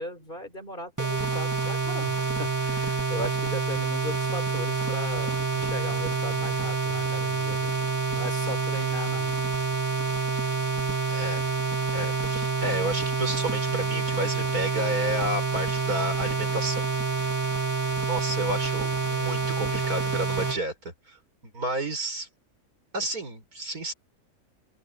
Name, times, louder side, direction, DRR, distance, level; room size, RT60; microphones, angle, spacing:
voice 1, 0.0-7.8 8.1-9.3 18.4-18.5, equal, 35° left, 4.5 m, -38 dB
sound 1, 1.0-20.6, right 4 dB, 10° right, 1.8 m, -27 dB
voice 2, 11.1-11.6 11.9-16.8 18.0-22.3 22.9-23.9, right 1 dB, 75° right, 5.8 m, -31 dB
open air
omnidirectional pair, 1.6 m